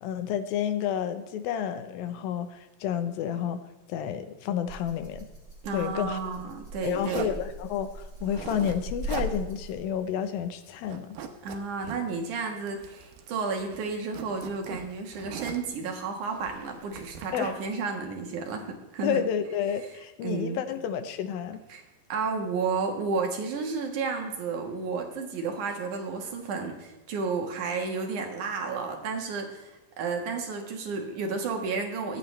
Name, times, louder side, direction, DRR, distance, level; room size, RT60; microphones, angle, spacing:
voice 1, 0.0-3.6 3.9-5.3 5.7-6.2 6.8-11.2 17.3-17.5 19.0-21.6, left 9 dB, 85° left, 9 dB, 2.6 m, -30 dB
Rattle (instrument), 4.7-10.0, right 1 dB, 10° right, 2.9 m, -39 dB
voice 2, 5.6-7.3 11.4-19.3 20.2-20.6 21.7-21.8 22.1-32.2, right 4 dB, 65° right, 3 dB, 2.8 m, -32 dB
Zipper (clothing), 7.0-7.4 8.2-8.8 9.0-9.3 9.7-9.8 10.1-10.6 10.8-12.0 12.7-13.3 13.6-15.7 16.3-17.4, right 7 dB, 85° right, 2.9 m, -40 dB
23.5 x 8.9 x 3.3 m, 1.0 s
omnidirectional pair, 4.1 m